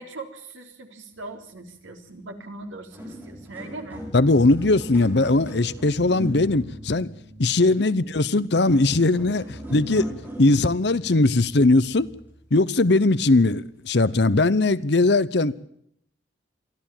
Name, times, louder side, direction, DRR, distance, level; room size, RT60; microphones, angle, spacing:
voice 1, 0.0-4.0, right 2 dB, 90° right, 3.5 m, -40 dB
sound 1, 2.4-2.5 2.8-12.5 13.1-13.3 14.0-14.1, equal, 10° right, 5.0 m, -39 dB
voice 2, 4.1-7.1 7.4-10.1 10.4-12.1 12.5-15.5, left 2 dB, 60° left, 0.8 m, -20 dB
24.0 x 14.0 x 8.9 m
head